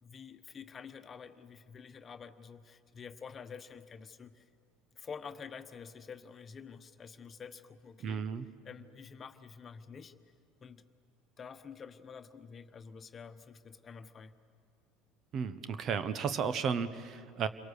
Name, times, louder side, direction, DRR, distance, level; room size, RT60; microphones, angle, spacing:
voice 1, 0.0-4.5 4.9-8.2 8.6-10.1 10.6-10.8 11.4-14.3, left 6 dB, 30° left, 9 dB, 1.2 m, -48 dB
voice 2, 8.0-8.5 15.3-17.5, right 6 dB, 45° right, 13 dB, 1.1 m, -33 dB
28.0 x 23.0 x 6.7 m, 2.2 s
hypercardioid pair, 70°, 0 cm